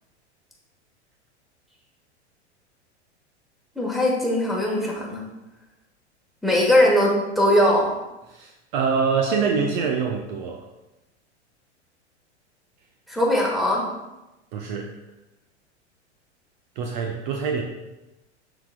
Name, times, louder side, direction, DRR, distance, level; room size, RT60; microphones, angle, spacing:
voice 1, 3.7-5.2 6.4-8.0 13.1-13.9, left 1 dB, ahead, -2 dB, 1.5 m, -20 dB
voice 2, 8.3-10.7 14.5-14.9 16.8-17.6, right 5 dB, 40° right, 3 dB, 0.6 m, -25 dB
11.5 x 4.1 x 2.4 m, 0.99 s
figure-of-eight pair, 90°, 35 cm